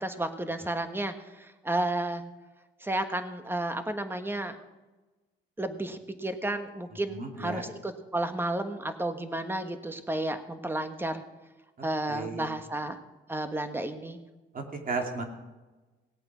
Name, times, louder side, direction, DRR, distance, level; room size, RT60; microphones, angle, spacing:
voice 1, 0.0-2.2 2.8-4.6 5.6-11.2 11.8-13.0 13.3-14.2, right 1 dB, 10° right, 8 dB, 1.4 m, -32 dB
voice 2, 7.1-7.6 12.1-12.5 14.5-15.2, right 3 dB, 45° right, 3 dB, 2.7 m, -34 dB
18.5 x 8.5 x 6.2 m, 1.2 s
cardioid pair, 90°, 20 cm